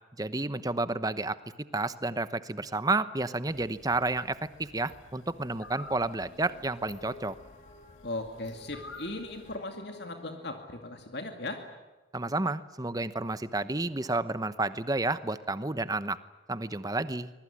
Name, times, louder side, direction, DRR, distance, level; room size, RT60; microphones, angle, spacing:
voice 1, 0.2-1.4 1.7-7.4 12.1-16.2 16.5-17.3, right 2 dB, 20° right, 13 dB, 0.9 m, -31 dB
sound 1, 3.5-9.6, left 2 dB, 80° left, 3.0 m, -51 dB
sound 2, 5.2-11.6, left 2 dB, 35° left, 4.8 m, -54 dB
voice 2, 8.0-11.6, left 2 dB, 55° left, 4 dB, 2.3 m, -38 dB
25.0 x 22.0 x 9.9 m, 1.2 s
head